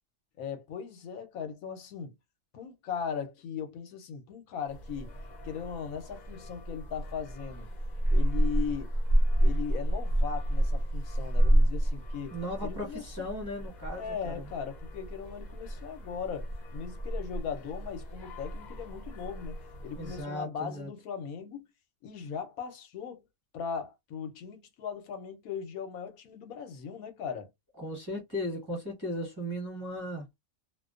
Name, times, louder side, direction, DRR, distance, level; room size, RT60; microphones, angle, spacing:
voice 1, 0.4-2.1 2.5-5.1 5.4-7.7 8.1-8.9 9.4-13.2 14.0-19.6 19.8-21.7 22.0-23.2 23.5-27.5, left 7 dB, 85° left, 1.1 m, -38 dB
sound 1, 4.7-20.2, right 1 dB, 40° left, 0.7 m, -30 dB
voice 2, 12.3-14.4 20.0-20.9 27.8-30.2, equal, 20° right, 1.0 m, -36 dB
2.4 x 2.2 x 2.3 m
omnidirectional pair, 1.5 m